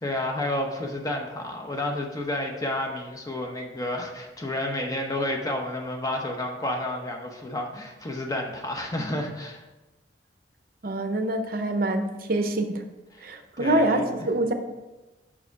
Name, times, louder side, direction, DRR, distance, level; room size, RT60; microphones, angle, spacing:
voice 1, 0.0-9.6 13.6-14.3, left 1 dB, 20° left, 2 dB, 0.7 m, -30 dB
voice 2, 10.8-12.8 13.2-14.5, right 1 dB, 50° right, 6 dB, 0.6 m, -25 dB
5.9 x 4.8 x 4.6 m, 1.1 s
head